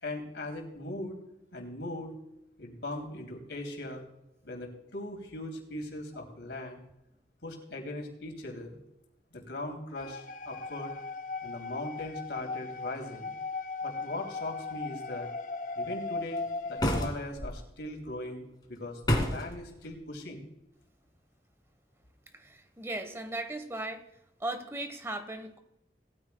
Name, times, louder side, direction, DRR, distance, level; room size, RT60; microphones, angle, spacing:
voice 1, 0.0-1.1 1.5-2.1 2.6-4.0 4.4-6.8 7.4-8.8 9.3-10.9 11.4-13.3 13.8-15.3 15.8-18.4 18.7-20.5, left 1 dB, 90° left, 2 dB, 3.0 m, -39 dB
sound 1, 9.9-17.1, left 3 dB, 45° left, 0.5 m, -38 dB
sound 2, 16.8-17.5 19.0-19.6, equal, 25° left, 1.9 m, -28 dB
voice 2, 22.3-24.1 24.4-25.6, right 2 dB, 15° right, 8 dB, 1.1 m, -37 dB
19.0 x 13.5 x 2.3 m, 0.84 s
head